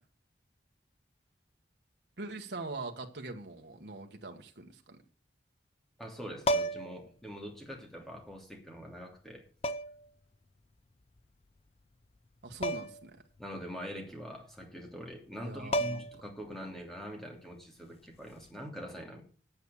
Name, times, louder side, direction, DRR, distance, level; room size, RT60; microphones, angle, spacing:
voice 1, 2.2-5.0 12.4-13.2 15.4-16.0, right 2 dB, 65° right, 3 dB, 1.4 m, -42 dB
voice 2, 6.0-9.5 13.4-19.2, equal, ahead, 1 dB, 2.9 m, -44 dB
sound 1, 6.4-7.0 8.3-8.4 9.6-10.1 12.6-13.1 13.4-13.5 15.3-15.4 15.7-16.3 18.3-18.5, equal, 35° left, 0.5 m, -32 dB
9.0 x 8.3 x 7.2 m, 0.39 s
head